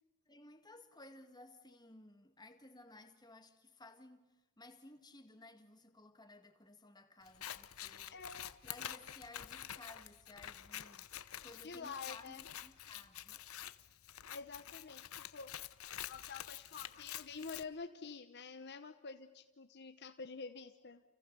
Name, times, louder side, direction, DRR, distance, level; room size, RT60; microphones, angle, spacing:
voice 1, 0.3-8.2 8.6-11.1 11.4-13.5, left 2 dB, 20° left, 2.1 m, -57 dB
Scissors, 7.3-17.6, left 11 dB, 75° left, 0.9 m, -48 dB
voice 2, 8.1-8.5 11.6-12.4 14.3-15.5 16.1-21.0, left 4 dB, 50° left, 0.9 m, -48 dB
30.0 x 29.0 x 6.8 m
head